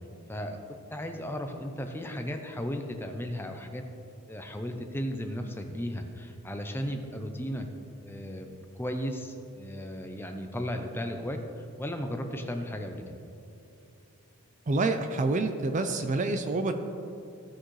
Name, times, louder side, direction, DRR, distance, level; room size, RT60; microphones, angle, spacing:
voice 1, 0.3-3.8 4.3-7.7 8.0-13.2, equal, 10° left, 4 dB, 0.6 m, -35 dB
voice 2, 14.7-16.7, right 3 dB, 35° right, 7 dB, 0.4 m, -27 dB
16.0 x 6.3 x 3.2 m, 2.6 s
head